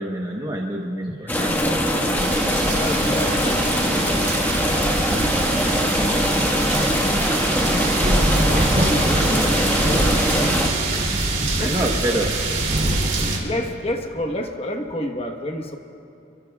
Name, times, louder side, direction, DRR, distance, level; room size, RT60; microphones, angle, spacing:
voice 1, 0.0-1.9 9.0-10.2 11.1-11.3 11.5-12.3, right 1 dB, 20° right, -1 dB, 1.0 m, -28 dB
sound 1, 1.3-10.7, equal, 10° left, 1.4 m, -22 dB
sound 2, 2.1-13.4, right 2 dB, 40° right, 2.8 m, -24 dB
voice 2, 2.6-4.2 6.9-7.0 7.4-7.8 11.6-12.3 13.4-15.8, left 1 dB, 30° left, 4 dB, 1.1 m, -29 dB
26.5 x 23.5 x 2.3 m, 2.8 s
head